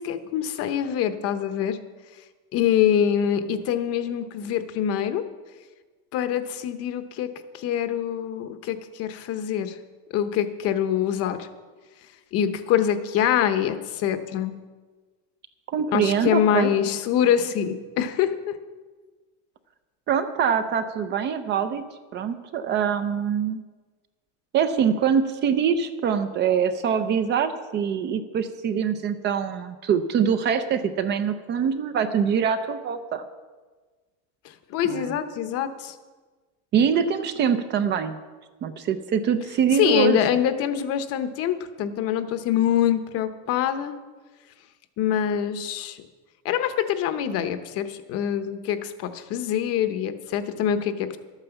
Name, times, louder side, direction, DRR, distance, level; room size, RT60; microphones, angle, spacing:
voice 1, 0.0-1.8 2.5-5.2 6.1-9.8 10.1-11.5 12.3-14.6 15.9-18.6 34.4-35.9 39.7-43.9 45.0-46.0 46.4-51.2, left 9 dB, 45° left, 10 dB, 0.9 m, -25 dB
voice 2, 15.7-16.7 20.1-21.8 22.1-23.6 24.5-33.2 34.8-35.1 36.7-38.2 38.6-40.2, right 7 dB, 30° right, 10 dB, 0.6 m, -24 dB
12.5 x 9.0 x 7.0 m, 1.3 s
cardioid pair, 175°, 35 cm